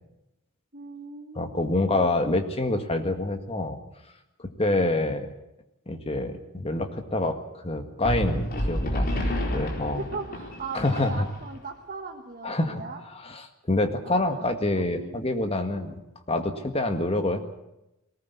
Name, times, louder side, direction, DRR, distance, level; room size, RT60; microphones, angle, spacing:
voice 1, 0.7-2.1 9.9-13.0 14.0-14.5 14.7-15.2 15.7-15.9, right 4 dB, 40° right, 3 dB, 1.4 m, -39 dB
voice 2, 1.4-3.8 4.4-5.3 5.9-10.0 10.7-11.3 12.4-12.8 13.2-16.0 16.3-17.4, left 2 dB, 25° left, 6 dB, 1.8 m, -27 dB
sound 1, 8.0-11.6, equal, 45° left, 4.3 m, -29 dB
19.5 x 18.5 x 8.4 m, 0.89 s
head